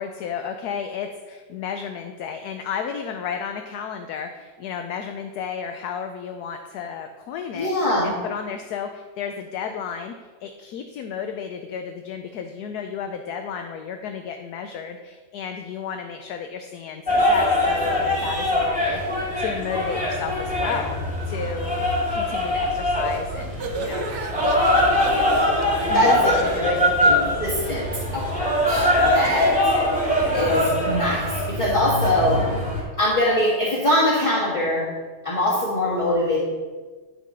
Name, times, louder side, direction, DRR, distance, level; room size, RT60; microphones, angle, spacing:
voice 1, 0.0-19.0 19.4-24.1 25.9-27.3 29.5-29.7, left 7 dB, 70° left, 5 dB, 1.0 m, -33 dB
voice 2, 7.5-8.1 25.9-26.3 26.6-26.8 27.0-27.8 28.1-29.5 30.3-32.4 33.0-34.8 35.2-36.4, left 1 dB, 20° left, -7 dB, 1.6 m, -22 dB
sound 1, 17.1-32.8, left 1 dB, 5° right, 2.5 m, -22 dB
sound 2, 23.3-30.7, right 3 dB, 70° right, 1.5 m, -33 dB
11.5 x 4.6 x 5.5 m, 1.4 s
omnidirectional pair, 1.9 m